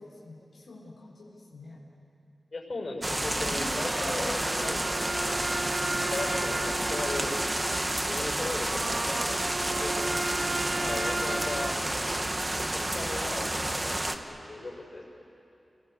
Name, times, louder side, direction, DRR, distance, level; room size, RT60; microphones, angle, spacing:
voice 1, 0.0-1.8 3.3-4.3, left 2 dB, 85° left, -5 dB, 4.0 m, -45 dB
voice 2, 2.5-5.4 6.0-7.3 8.0-10.1 10.8-11.7 12.7-15.0, left 2 dB, 50° left, -1 dB, 6.5 m, -37 dB
sound 1, 3.0-14.2, right 1 dB, 20° right, 1.3 m, -30 dB
sound 2, 3.7-11.7, right 2 dB, 40° right, 1.1 m, -35 dB
30.0 x 21.0 x 8.4 m, 2.8 s
wide cardioid pair, 105°, 0 cm